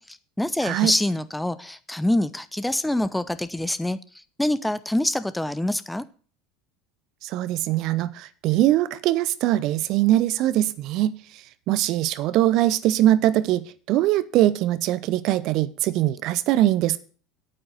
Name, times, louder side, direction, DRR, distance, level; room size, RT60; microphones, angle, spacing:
voice 1, 0.0-6.0, left 1 dB, 5° left, 0.7 m, -26 dB
voice 2, 7.2-11.2 11.7-13.6 13.9-17.0, right 14 dB, 50° right, 0.7 m, -22 dB
8.8 x 8.7 x 6.4 m
figure-of-eight pair, 70°, 0 cm